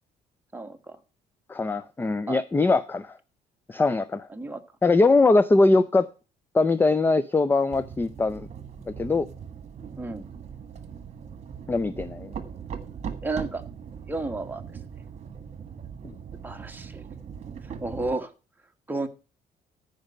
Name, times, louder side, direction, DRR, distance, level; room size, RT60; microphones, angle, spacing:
voice 1, 0.5-1.0 2.3-2.4 4.3-4.6 9.9-10.3 13.2-13.6 14.1-14.6 16.4-17.0 17.8-18.3 18.9-19.1, right 2 dB, 10° right, 1.3 m, -32 dB
voice 2, 1.5-3.2 3.7-4.3 4.8-6.1 6.5-8.5 9.0-9.3 11.7-12.3 16.0-16.2, left 3 dB, 10° left, 0.4 m, -21 dB
sound 1, 7.7-18.2, right 7 dB, 40° right, 1.6 m, -40 dB
14.5 x 5.2 x 5.4 m
cardioid pair, 110°, 17 cm